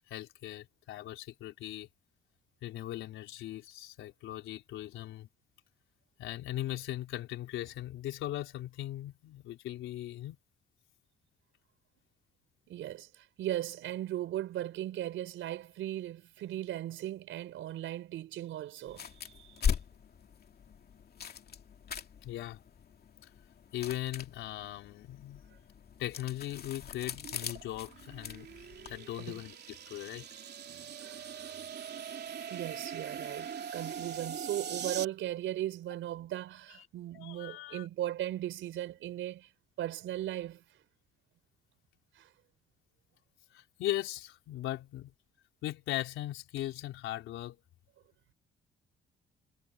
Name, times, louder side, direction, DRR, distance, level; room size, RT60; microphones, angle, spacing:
voice 1, 0.1-1.9 2.6-5.3 6.2-10.4 22.2-22.6 23.2-23.3 23.7-25.4 26.0-30.3 36.7-36.9 37.1-37.9 43.5-45.1 45.6-47.6, left 13 dB, 90° left, 4.1 m, -39 dB
voice 2, 12.7-19.6 29.2-29.4 30.7-39.5 39.8-40.6 42.2-42.3, right 13 dB, 80° right, 4.5 m, -38 dB
sound 1, 18.9-29.0, left 7 dB, 50° left, 2.4 m, -40 dB
sound 2, 27.1-35.0, right 7 dB, 55° right, 3.1 m, -42 dB
cardioid pair, 90°, 20 cm